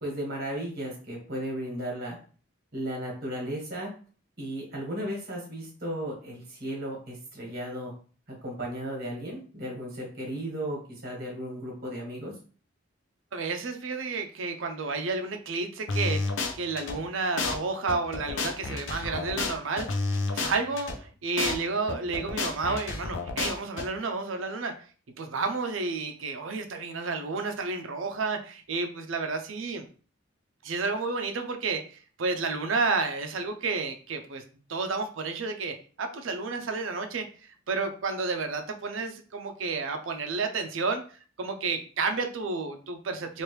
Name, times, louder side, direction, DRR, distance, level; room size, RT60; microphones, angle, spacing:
voice 1, 0.0-2.2 2.7-3.9 4.4-7.9 8.4-12.3, right 1 dB, 50° right, -2 dB, 1.5 m, -35 dB
voice 2, 13.3-19.9 20.3-24.7 25.2-29.9 30.6-34.4 34.7-37.3 37.7-41.0 41.4-43.4, right 4 dB, 75° right, 6 dB, 0.5 m, -31 dB
sound 1, 15.9-17.0 17.4-17.6 17.9-21.0 21.4-21.6 21.9-23.9, left 3 dB, 65° left, 0.5 m, -30 dB
3.1 x 2.5 x 3.1 m, 0.40 s
head